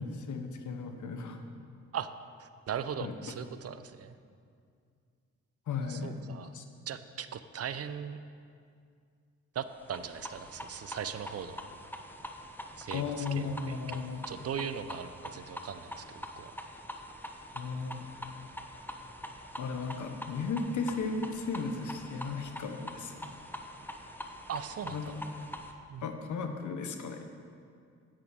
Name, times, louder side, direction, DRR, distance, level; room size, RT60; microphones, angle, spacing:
voice 1, 0.0-1.4 3.0-3.1 5.7-6.2 6.5-6.6 12.9-14.2 17.5-18.0 18.2-18.3 19.6-23.3 24.9-25.0 26.0-27.2, left 4 dB, 65° left, 6 dB, 1.2 m, -35 dB
voice 2, 2.4-4.2 5.9-6.5 6.9-8.2 9.5-11.6 12.8-14.0 14.3-16.5 24.5-25.1 25.9-26.1, right 8 dB, 50° right, 12 dB, 0.6 m, -39 dB
sound 1, 9.8-25.7, equal, 5° left, 1.0 m, -44 dB
10.5 x 8.8 x 4.7 m, 2.3 s
supercardioid pair, 60°, 32 cm